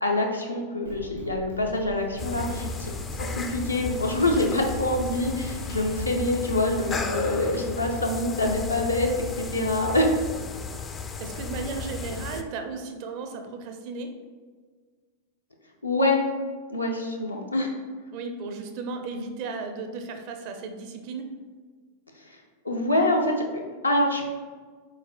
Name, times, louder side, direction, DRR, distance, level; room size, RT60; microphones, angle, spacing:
voice 1, 0.0-2.9 3.2-9.1 9.4-10.1 15.8-16.2 16.7-17.7 22.6-24.3, left 1 dB, 85° left, 0 dB, 0.6 m, -25 dB
Drum kit, 0.8-6.0, right 3 dB, 75° right, 1.1 m, -41 dB
sound 1, 2.2-12.4, left 4 dB, 20° left, 0.3 m, -34 dB
voice 2, 11.2-14.1 18.1-21.3, right 4 dB, 45° right, 5 dB, 0.5 m, -35 dB
4.8 x 4.2 x 2.2 m, 1.5 s
figure-of-eight pair, 90°, 0 cm